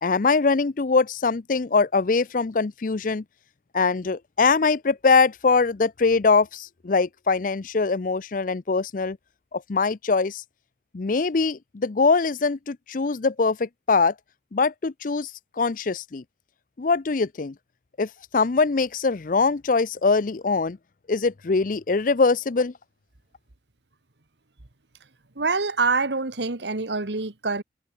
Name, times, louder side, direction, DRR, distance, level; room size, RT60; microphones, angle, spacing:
voice 1, 0.0-3.2 3.7-9.2 9.5-10.4 10.9-14.1 14.5-15.3 15.6-16.2 16.8-17.5 18.0-20.8 21.1-22.7, left 4 dB, 50° left, 0.6 m, -22 dB
voice 2, 25.3-27.6, right 4 dB, 80° right, 1.7 m, -25 dB
head